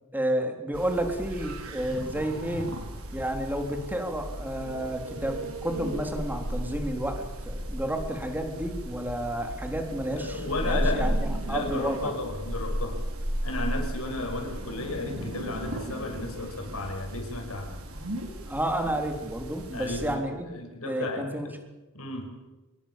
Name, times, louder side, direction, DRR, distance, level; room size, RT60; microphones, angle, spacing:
voice 1, 0.1-2.7 3.1-12.1 18.5-20.6 20.8-21.5, right 1 dB, 10° right, 4 dB, 3.8 m, -31 dB
sound 1, 0.7-20.2, right 1 dB, 70° right, 5.5 m, -35 dB
voice 2, 10.1-11.1 11.4-13.0 13.4-17.8 19.7-20.2 20.5-21.5 21.9-22.4, left 2 dB, 70° left, 3 dB, 6.2 m, -33 dB
26.0 x 22.5 x 7.3 m, 1.1 s
head